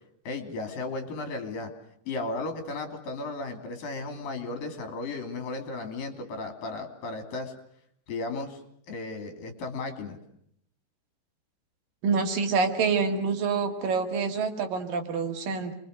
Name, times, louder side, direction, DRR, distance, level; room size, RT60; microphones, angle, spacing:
voice 1, 0.3-1.7 2.1-7.5 8.1-8.6 8.9-10.2, left 3 dB, 65° left, 6 dB, 4.5 m, -35 dB
voice 2, 12.0-15.7, right 5 dB, 65° right, 5 dB, 3.4 m, -27 dB
28.0 x 23.0 x 6.5 m, 0.69 s
omnidirectional pair, 4.4 m